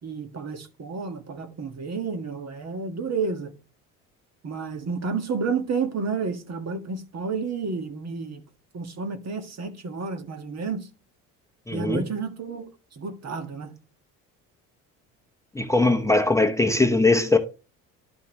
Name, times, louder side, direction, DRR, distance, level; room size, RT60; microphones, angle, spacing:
voice 1, 0.0-3.5 4.4-8.4 8.7-10.9 11.7-12.7 12.9-13.7, right 5 dB, 40° right, 1.7 m, -30 dB
voice 2, 11.7-12.0 15.5-17.4, left 2 dB, 10° left, 0.9 m, -20 dB
12.0 x 5.6 x 3.1 m
hypercardioid pair, 70°, 39 cm